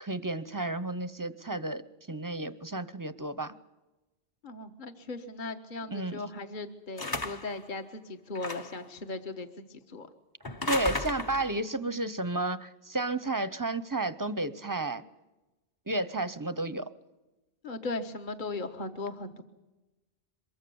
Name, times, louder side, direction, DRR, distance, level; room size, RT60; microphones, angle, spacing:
voice 1, 0.0-1.8 2.1-3.5 5.9-6.2 10.7-15.0 15.9-16.9, right 2 dB, 20° right, 14 dB, 0.7 m, -32 dB
voice 2, 4.4-10.1 17.6-19.4, left 3 dB, 50° left, 6 dB, 1.4 m, -38 dB
sound 1, 7.0-7.6 8.4-8.9 10.4-11.6, left 2 dB, 25° left, 0.7 m, -34 dB
23.5 x 22.5 x 7.0 m, 1.1 s
omnidirectional pair, 1.1 m